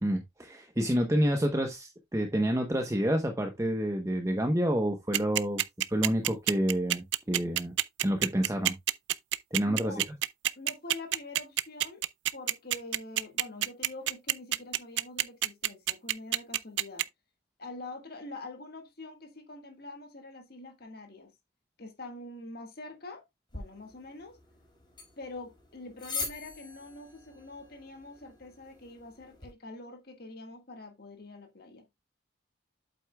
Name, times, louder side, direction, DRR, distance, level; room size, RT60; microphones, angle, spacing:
voice 1, 0.0-5.6 5.9-7.7 8.0-8.8 9.5-10.0, equal, 15° right, 0.8 m, -28 dB
sound 1, 5.1-17.0, right 13 dB, 65° right, 0.5 m, -27 dB
voice 2, 9.7-10.0 10.5-12.0 12.3-17.1 17.6-21.3 21.8-23.2 23.5-24.4 25.2-31.8, left 2 dB, 50° left, 1.7 m, -45 dB
sound 2, 23.5-29.5, left 3 dB, 25° left, 4.7 m, -43 dB
8.3 x 7.8 x 2.2 m
head